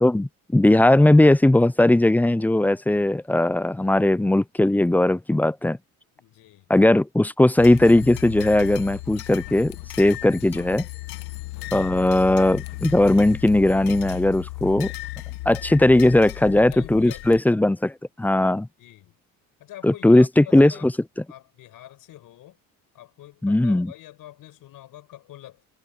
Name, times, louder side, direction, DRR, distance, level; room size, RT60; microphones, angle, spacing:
voice 1, 0.0-5.8 6.7-10.9 11.7-14.9 15.5-18.7 19.8-20.9 23.4-23.9, left 1 dB, 5° left, 0.5 m, -18 dB
voice 2, 6.2-6.7 10.1-10.2 11.3-11.7 16.1-17.4 18.8-19.2 19.6-20.9 21.3-22.6 22.9-25.6, left 13 dB, 65° left, 6.3 m, -45 dB
sound 1, 7.6-17.4, left 19 dB, 85° left, 1.7 m, -36 dB
cardioid pair, 110°, 36 cm